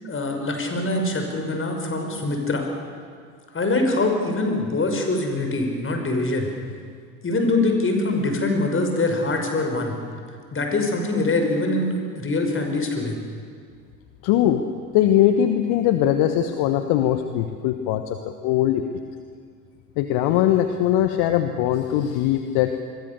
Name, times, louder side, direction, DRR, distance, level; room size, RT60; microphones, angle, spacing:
voice 1, 0.0-2.7 3.5-6.5 7.2-10.0 10.5-13.2, left 2 dB, 25° left, 4 dB, 5.7 m, -23 dB
voice 2, 14.2-14.6 14.9-18.8 20.0-22.8, left 11 dB, 55° left, 8 dB, 1.4 m, -21 dB
27.0 x 22.5 x 6.9 m, 2.1 s
figure-of-eight pair, 65°, 46 cm